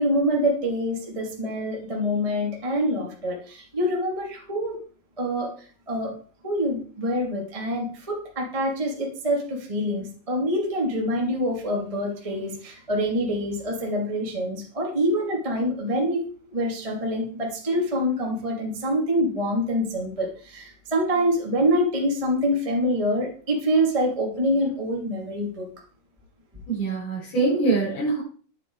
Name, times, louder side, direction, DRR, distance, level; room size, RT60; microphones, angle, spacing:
voice 1, 0.0-4.8 5.2-6.1 6.4-16.2 16.5-25.7, equal, 10° right, -1 dB, 2.3 m, -25 dB
voice 2, 26.7-28.2, right 3 dB, 60° left, -10 dB, 7.0 m, -24 dB
10.5 x 9.9 x 4.8 m, 0.41 s
omnidirectional pair, 4.1 m